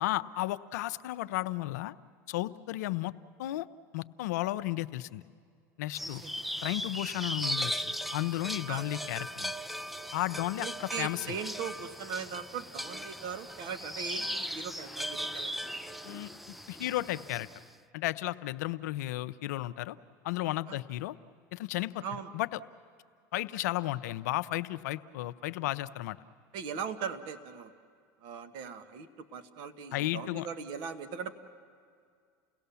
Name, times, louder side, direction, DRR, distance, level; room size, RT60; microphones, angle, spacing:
voice 1, 0.0-1.9 2.3-3.1 3.4-3.7 3.9-5.2 5.8-6.2 6.6-9.5 10.1-11.4 16.0-16.3 16.7-17.5 17.9-20.0 20.2-21.2 21.5-22.0 22.3-22.6 23.3-26.2 29.9-30.5, left 16 dB, 80° left, 13 dB, 0.6 m, -33 dB
sound 1, 5.9-17.6, equal, ahead, 0.5 m, -38 dB
voice 2, 10.6-15.7 20.7-20.8 22.0-22.3 26.5-27.7 28.2-31.3, right 6 dB, 60° right, 10 dB, 1.3 m, -39 dB
29.5 x 17.5 x 7.0 m, 2.2 s
hypercardioid pair, 95°, 9 cm